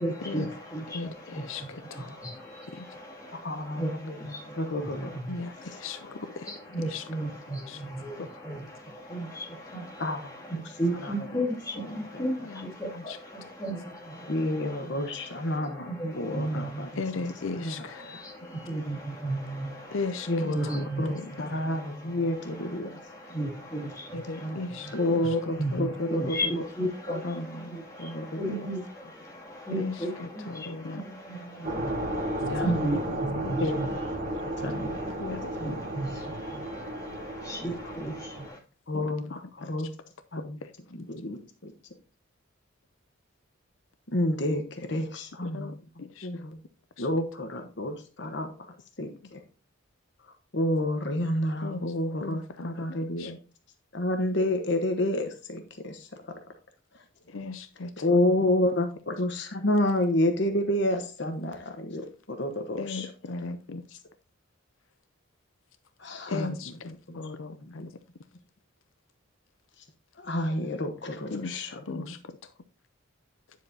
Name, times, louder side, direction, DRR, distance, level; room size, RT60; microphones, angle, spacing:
voice 1, 0.0-38.6, right 1 dB, 15° left, 2.4 m, -35 dB
voice 2, 0.9-2.2 2.8-2.9 5.3-6.5 6.9-7.0 7.7-7.8 12.5-12.6 17.0-18.3 19.9-20.5 21.1-21.2 24.1-25.2 25.7-26.3 29.8-29.9 30.6-31.0 33.4-33.6 35.2-35.8 38.9-39.1 39.6-39.7 40.4-40.7 45.4-46.3 47.0-47.1 51.6-51.9 52.2-52.7 53.2-53.3 57.3-58.4 62.8-64.0 66.3-67.9 71.3-72.2, left 3 dB, 75° left, 0.6 m, -37 dB
voice 3, 3.3-5.1 5.7-5.8 10.0-10.3 11.0-11.1 11.9-12.2 14.3-16.9 17.1-17.3 17.5-18.2 20.3-22.9 24.9-26.4 27.1-28.6 32.4-32.7 33.6-34.0 34.6-35.4 38.9-39.9 40.3-40.6 40.9-41.7 44.1-45.8 46.2-46.6 47.0-49.4 50.5-53.4 53.9-56.4 56.9-57.0 58.0-63.4 66.0-66.8 67.1-67.2 67.6-67.9 70.2-72.1, left 1 dB, 55° left, 1.0 m, -30 dB
sound 1, 31.6-38.5, right 1 dB, 35° right, 1.6 m, -33 dB
9.9 x 7.4 x 2.7 m
head